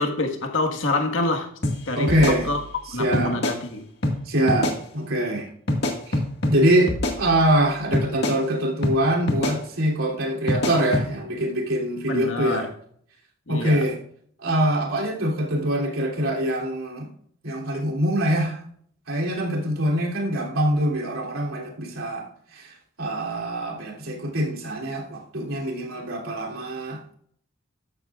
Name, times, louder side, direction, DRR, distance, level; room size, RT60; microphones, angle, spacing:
voice 1, 0.0-1.5 1.9-2.6 2.9-3.8 12.1-12.7 13.5-13.9, left 2 dB, 70° left, 1.6 m, -26 dB
sound 1, 1.6-1.8 2.1-2.8 3.1-3.6 4.0-4.2 4.5-4.8 5.7-6.6 6.9-7.6 7.9-8.4 8.8-9.0 9.3-9.6 10.5-11.1, left 1 dB, 55° left, 1.8 m, -24 dB
voice 2, 2.0-2.5 3.0-3.4 4.3-5.5 6.1-6.2 6.5-12.7 13.5-14.0 14.4-17.1 17.4-18.6 19.1-22.3 22.5-27.0, right 1 dB, 90° right, 3.0 m, -24 dB
14.0 x 11.0 x 2.4 m
head